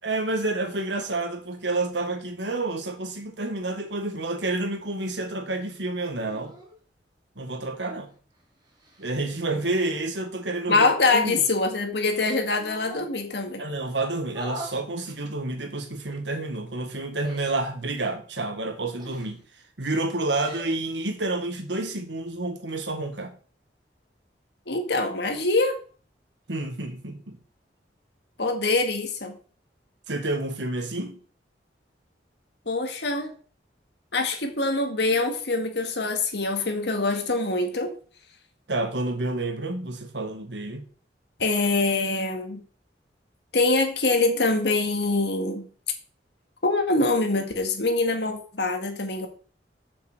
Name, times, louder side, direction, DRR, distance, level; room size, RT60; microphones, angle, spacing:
voice 1, 0.0-6.5 7.3-8.1 9.0-10.9 11.1-11.4 13.6-19.4 19.8-23.4 26.5-27.4 30.1-31.2 38.7-40.8, right 2 dB, 80° right, 1.7 m, -29 dB
sound 1, 4.2-4.5 6.2-6.7 8.1-9.2 11.3-12.0 12.5-13.1 14.3-14.8 16.0-16.2 17.2-17.6 19.0-19.5 20.2-20.7, equal, 25° right, 2.5 m, -42 dB
voice 2, 10.7-13.6 24.7-25.7 28.4-29.4 32.7-33.3 34.1-37.9 41.4-42.6 43.5-45.7 46.6-49.3, left 3 dB, 65° left, 1.9 m, -24 dB
6.9 x 6.7 x 6.6 m
head